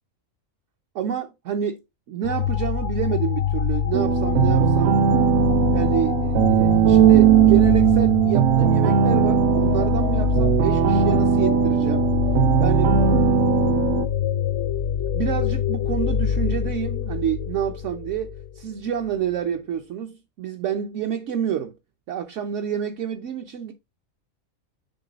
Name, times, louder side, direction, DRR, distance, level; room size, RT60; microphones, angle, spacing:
voice 1, 0.9-1.8 2.1-5.0 5.7-12.0 12.6-13.0 14.7-14.9 15.1-21.7 22.1-23.7, right 9 dB, 70° right, 1.0 m, -28 dB
sound 1, 2.2-18.6, left 8 dB, 65° left, 0.9 m, -24 dB
sound 2, 3.9-14.1, right 10 dB, 85° right, 1.0 m, -19 dB
6.7 x 3.9 x 3.9 m
omnidirectional pair, 1.4 m